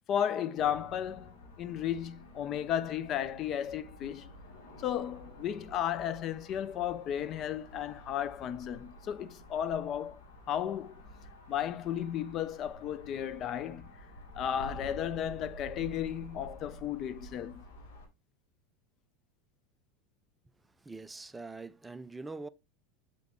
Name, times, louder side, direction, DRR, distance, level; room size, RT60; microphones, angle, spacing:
voice 1, 0.1-4.3 4.8-10.2 10.5-11.0 11.5-13.9 14.3-17.6, left 10 dB, 45° left, 0.5 m, -34 dB
sound 1, 0.6-18.1, equal, 75° left, 1.7 m, -50 dB
voice 2, 20.8-22.5, right 3 dB, 10° right, 0.5 m, -43 dB
7.4 x 3.6 x 3.6 m
hypercardioid pair, 100°, 0 cm